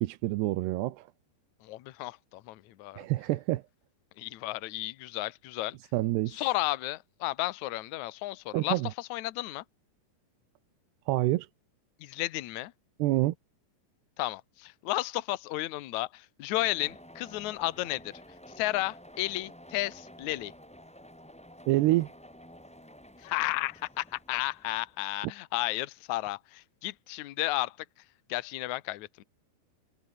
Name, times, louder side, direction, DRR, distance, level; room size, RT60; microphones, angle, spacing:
voice 1, 0.0-1.1 3.0-3.6 5.9-6.4 8.5-8.9 11.1-11.5 13.0-13.3 21.7-22.1, right 17 dB, 75° right, 2.9 m, -27 dB
voice 2, 1.6-3.0 4.2-5.8 6.3-9.6 12.0-12.7 14.2-18.1 18.6-20.5 23.2-27.8 28.3-29.2, left 18 dB, 90° left, 1.6 m, -33 dB
sound 1, 16.5-25.1, equal, 5° left, 1.3 m, -51 dB
omnidirectional pair, 5.0 m